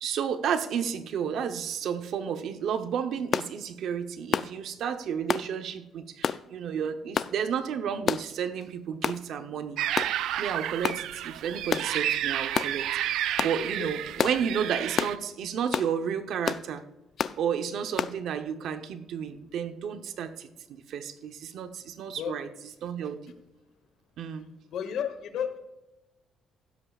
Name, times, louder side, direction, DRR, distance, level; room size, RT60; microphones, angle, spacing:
voice 1, 0.0-9.8 10.4-12.9 13.4-16.8 17.4-22.5 22.8-23.3 24.2-24.5, right 7 dB, 60° right, 9 dB, 0.9 m, -32 dB
sound 1, 3.3-3.5 4.3-4.5 5.3-5.5 6.2-6.4 7.1-7.3 8.1-8.3 9.0-9.2 9.9-10.1 10.8-11.0 11.7-11.9 12.5-12.7 13.4-13.6 14.2-14.4 15.0-15.2 15.7-15.9 16.4-16.6 17.2-17.4 18.0-18.1, left 7 dB, 40° left, 0.3 m, -28 dB
sound 2, 9.8-15.2, right 12 dB, 75° right, 0.5 m, -31 dB
voice 2, 24.7-25.6, left 8 dB, 60° left, 9 dB, 1.2 m, -32 dB
15.5 x 12.5 x 2.4 m, 1.0 s
cardioid pair, 170°, 0 cm